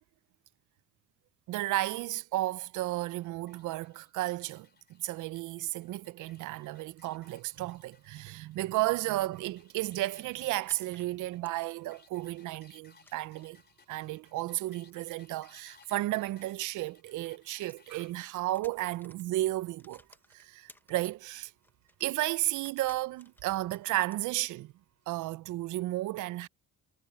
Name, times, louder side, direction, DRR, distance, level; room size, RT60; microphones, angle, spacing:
voice 1, 1.5-13.6 13.9-20.0 20.3-21.5 22.0-24.7 25.1-26.5, right 17 dB, 85° right, 0.6 m, -33 dB
sound 1, 3.2-18.1, left 5 dB, 35° left, 3.3 m, -63 dB
sound 2, 5.8-25.4, right 10 dB, 65° right, 7.5 m, -73 dB
sound 3, 9.8-12.6 13.0-13.7 14.8-17.8 18.1-21.3 21.6-24.2, left 1 dB, 5° left, 1.3 m, -61 dB
cardioid pair, 90°, 30 cm